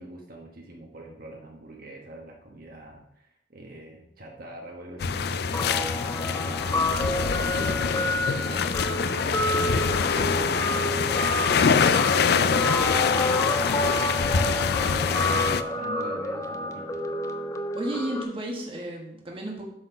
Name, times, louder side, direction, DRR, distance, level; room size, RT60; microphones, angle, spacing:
voice 1, 0.0-14.2 14.7-17.0, right 1 dB, 55° right, 0 dB, 1.3 m, -44 dB
sound 1, 5.0-15.6, left 6 dB, 60° left, 0.4 m, -24 dB
Guitar, 5.5-18.2, left 1 dB, 20° left, 0.6 m, -29 dB
voice 2, 17.7-19.7, right 1 dB, 30° right, -1 dB, 1.3 m, -32 dB
7.8 x 4.4 x 5.7 m, 0.79 s
head